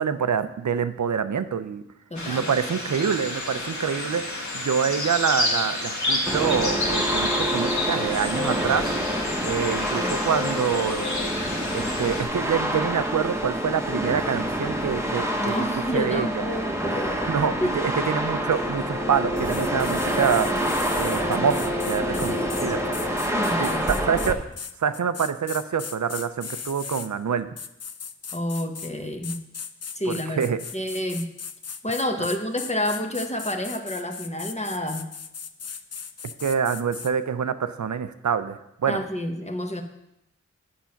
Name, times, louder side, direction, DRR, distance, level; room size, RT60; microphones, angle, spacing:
voice 1, 0.0-1.8 2.3-4.2 4.5-8.9 9.4-11.2 11.7-15.7 15.9-16.4 17.3-17.5 18.1-20.5 21.0-22.3 22.6-22.8 23.6-24.4 24.8-27.5 30.1-30.6 36.4-39.0, right 7 dB, 75° right, 12 dB, 0.6 m, -26 dB
sound 1, 2.1-12.2, left 2 dB, 70° left, 1.7 m, -30 dB
voice 2, 2.1-2.5 9.9-10.1 15.4-17.3 17.6-17.8 22.1-22.6 23.3-24.0 28.3-29.4 29.9-30.4 30.7-31.3 31.8-35.1 38.9-39.8, equal, 20° left, 4 dB, 1.0 m, -29 dB
sound 2, 6.3-24.3, equal, 10° right, 1.1 m, -27 dB
sound 3, 19.4-27.1 27.6-28.9 29.2-37.1, left 6 dB, 55° left, 0.5 m, -38 dB
7.4 x 7.0 x 5.8 m, 0.82 s
wide cardioid pair, 70°, 29 cm